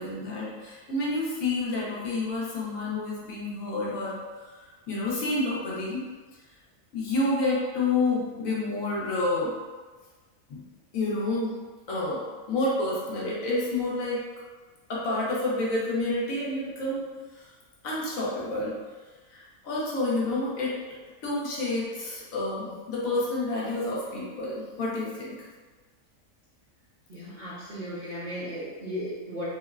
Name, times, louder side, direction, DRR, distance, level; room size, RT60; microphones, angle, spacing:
voice 1, 0.0-6.0 6.9-9.5 10.5-10.6 10.9-11.6 11.9-14.2 14.9-17.0 17.3-17.5 17.8-18.8 19.3-20.8 21.2-25.4, left 2 dB, 75° left, -6 dB, 1.2 m, -29 dB
voice 2, 27.1-29.4, equal, 50° right, -9 dB, 0.6 m, -36 dB
3.7 x 2.1 x 2.3 m, 1.3 s
omnidirectional pair, 1.4 m